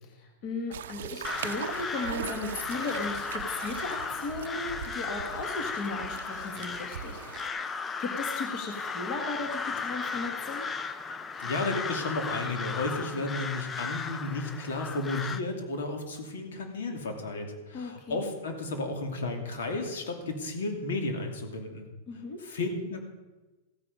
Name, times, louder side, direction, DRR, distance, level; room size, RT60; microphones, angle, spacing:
voice 1, 0.0-7.6 8.0-10.7 17.7-18.2 22.1-22.4, left 3 dB, 30° left, 3 dB, 1.5 m, -36 dB
sound 1, 0.7-7.5, right 10 dB, 70° right, 0.5 m, -40 dB
Crow, 1.2-15.4, left 5 dB, 10° left, 0.4 m, -36 dB
voice 2, 11.4-21.9 22.4-23.0, left 2 dB, 80° left, 4 dB, 2.6 m, -33 dB
15.0 x 9.6 x 5.5 m, 1.2 s
supercardioid pair, 175°, 0 cm